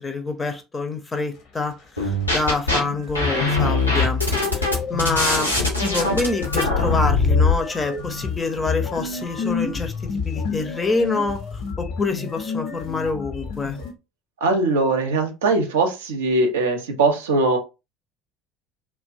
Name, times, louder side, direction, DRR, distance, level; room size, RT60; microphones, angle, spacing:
voice 1, 0.0-4.2 4.5-5.5 5.8-13.8, left 3 dB, 20° left, 0.5 m, -26 dB
sound 1, 2.0-2.8 3.1-7.6, left 3 dB, 90° left, 0.7 m, -21 dB
sound 2, 2.3-2.4 2.7-13.9, left 5 dB, 55° left, 0.7 m, -30 dB
voice 2, 14.4-17.6, right 3 dB, 70° right, 0.5 m, -21 dB
2.4 x 2.2 x 2.3 m
figure-of-eight pair, 65°, 0 cm